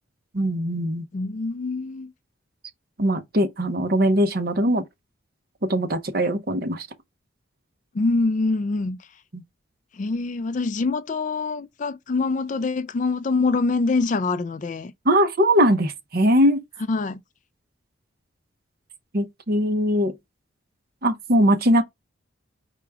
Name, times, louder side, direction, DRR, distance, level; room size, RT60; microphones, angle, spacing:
voice 1, 0.3-1.0 3.0-4.8 5.7-6.9 9.3-9.4 15.0-16.6 19.1-20.1 21.0-21.8, equal, 50° right, 0.8 m, -21 dB
voice 2, 1.1-2.1 7.9-9.0 10.0-14.9 16.9-17.2, left 3 dB, 40° left, 0.3 m, -25 dB
4.9 x 2.3 x 4.7 m
head